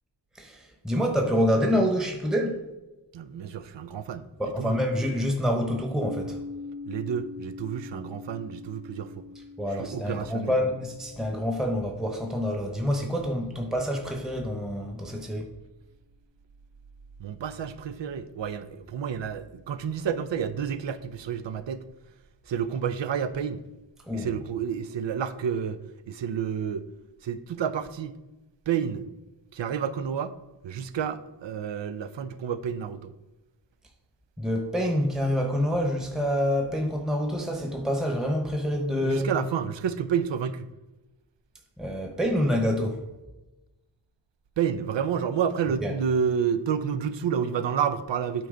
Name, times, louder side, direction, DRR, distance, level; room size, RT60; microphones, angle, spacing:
voice 1, 0.3-2.6 4.4-6.4 9.6-15.5 24.1-24.3 34.4-39.3 41.8-43.0 45.8-45.9, equal, ahead, 1.0 m, -27 dB
voice 2, 3.1-4.3 4.6-4.8 6.9-9.2 9.7-10.6 17.2-21.8 22.5-23.6 24.1-25.8 26.1-26.8 27.2-28.2 28.7-29.1 29.5-30.3 30.6-33.1 39.0-40.7 44.6-48.5, right 7 dB, 85° right, 0.6 m, -30 dB
sound 1, 6.0-13.8, left 3 dB, 50° right, 0.7 m, -43 dB
8.5 x 4.5 x 3.8 m
cardioid pair, 50°, 43 cm